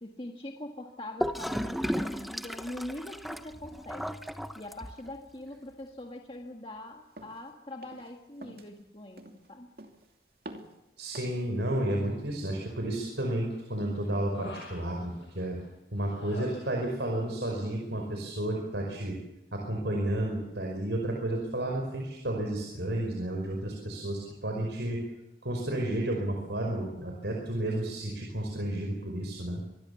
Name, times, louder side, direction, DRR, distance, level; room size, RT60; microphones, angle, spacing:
voice 1, 0.0-4.1 4.6-9.7, left 1 dB, 30° left, 2 dB, 1.8 m, -42 dB
Gurgling / Toilet flush, 1.2-5.2, equal, ahead, 0.9 m, -34 dB
sound 1, 7.2-7.4 7.8-8.1 8.4-8.7 9.2-9.5 9.8-10.1 10.5-10.8 11.1-11.5, right 1 dB, 55° right, 2.8 m, -47 dB
voice 2, 11.0-15.6 15.9-19.2 19.5-25.0 25.4-29.7, right 1 dB, 80° right, 1 dB, 5.3 m, -32 dB
Human voice, 12.5-13.1 13.5-15.6 16.1-17.2 17.4-17.7, left 3 dB, 80° left, 7.4 m, -48 dB
26.0 x 21.0 x 7.1 m, 0.92 s
head